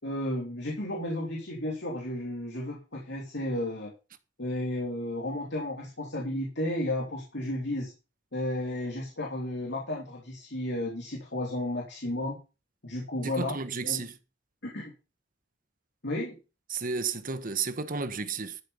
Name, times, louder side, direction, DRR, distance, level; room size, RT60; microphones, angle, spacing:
voice 1, 0.0-3.9 4.4-7.9 8.3-12.4 12.8-13.6 13.8-14.0 14.6-14.9 16.0-16.4, left 1 dB, 65° left, 3.0 m, -33 dB
voice 2, 13.2-14.2 16.7-18.6, right 5 dB, 45° right, 1.3 m, -32 dB
13.0 x 6.9 x 5.6 m
head